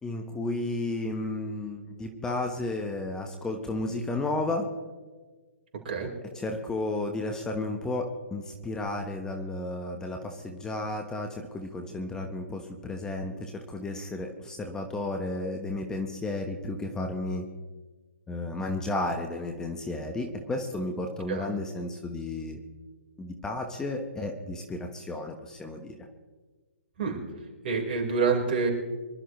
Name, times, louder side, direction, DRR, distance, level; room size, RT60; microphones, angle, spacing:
voice 1, 0.0-4.7 6.3-17.5 18.3-22.6 23.2-26.0, left 2 dB, 10° left, 4 dB, 1.2 m, -33 dB
voice 2, 27.6-28.7, right 5 dB, 50° right, 0 dB, 4.6 m, -27 dB
25.0 x 12.5 x 3.2 m, 1.4 s
figure-of-eight pair, 135°, 7 cm